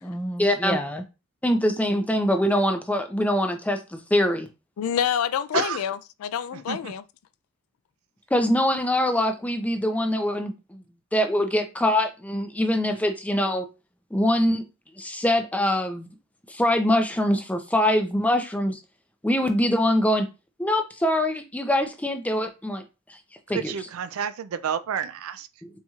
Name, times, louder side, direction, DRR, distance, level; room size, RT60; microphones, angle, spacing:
voice 1, 0.0-1.0 1.4-4.5 8.3-10.8 11.1-13.7 14.1-14.7 15.0-16.1 16.5-18.8 19.2-20.3 20.6-22.8 23.1-23.2 23.5-23.7 25.6-25.7, left 1 dB, 5° left, 0.5 m, -23 dB
voice 2, 4.8-7.0, left 8 dB, 85° left, 0.3 m, -27 dB
voice 3, 6.5-6.9 23.5-25.5, right 7 dB, 75° right, 0.4 m, -30 dB
4.2 x 2.9 x 2.4 m
head